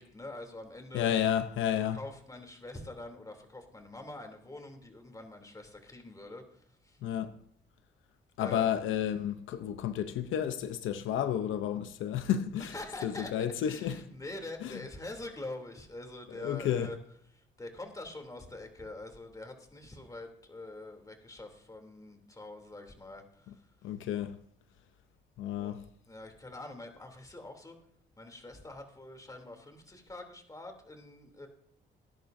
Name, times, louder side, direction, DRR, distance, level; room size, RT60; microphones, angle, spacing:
voice 1, 0.0-1.1 1.8-7.0 8.4-8.8 12.6-13.3 13.6-17.0 17.3-23.6 25.6-25.8 26.1-27.8 28.2-31.5, left 2 dB, 15° left, 3.0 m, -45 dB
voice 2, 0.9-2.0 7.0-7.3 8.4-12.7 13.0-14.0 14.6-14.8 16.3-16.9 23.8-24.4 25.4-25.8, left 10 dB, 80° left, 0.7 m, -31 dB
19.0 x 10.5 x 2.7 m
cardioid pair, 90°, 20 cm